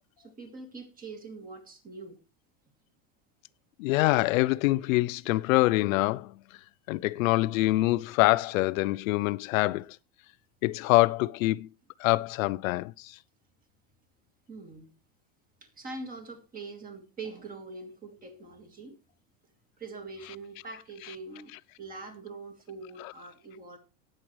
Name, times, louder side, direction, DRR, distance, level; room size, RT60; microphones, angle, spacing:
voice 1, 0.2-2.2 14.5-14.9 15.6-19.0 19.8-23.8, right 3 dB, 20° right, 2.7 m, -43 dB
voice 2, 3.8-6.3 6.9-10.0 10.6-11.7 12.0-13.2, left 19 dB, 75° left, 0.6 m, -25 dB
18.5 x 7.7 x 3.2 m
supercardioid pair, 155°, 40 cm